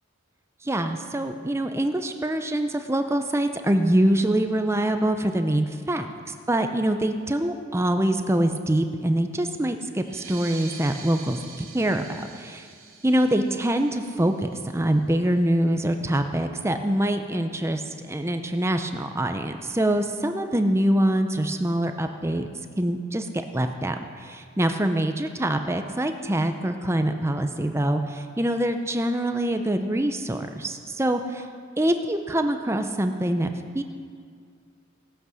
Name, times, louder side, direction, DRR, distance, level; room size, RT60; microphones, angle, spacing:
voice 1, 0.6-12.7 13.0-22.5 22.8-31.5 31.8-33.8, right 1 dB, 15° right, 7 dB, 0.5 m, -25 dB
sound 1, 10.0-15.1, right 5 dB, 80° right, 2.5 m, -45 dB
18.0 x 8.0 x 6.3 m, 2.2 s
head